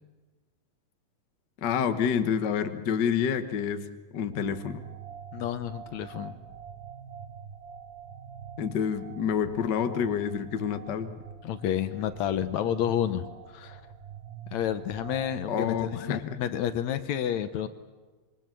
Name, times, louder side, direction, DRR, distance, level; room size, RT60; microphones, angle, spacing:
voice 1, 1.6-3.9 4.1-4.8 8.6-11.1 15.5-16.4, left 7 dB, 50° left, 9 dB, 1.3 m, -28 dB
sound 1, 4.3-16.2, right 7 dB, 85° right, 3.1 m, -45 dB
voice 2, 5.3-6.3 11.4-13.3 13.5-13.8 14.5-17.7, left 10 dB, 70° left, 11 dB, 2.1 m, -30 dB
27.0 x 24.0 x 7.6 m, 1.3 s
omnidirectional pair, 3.5 m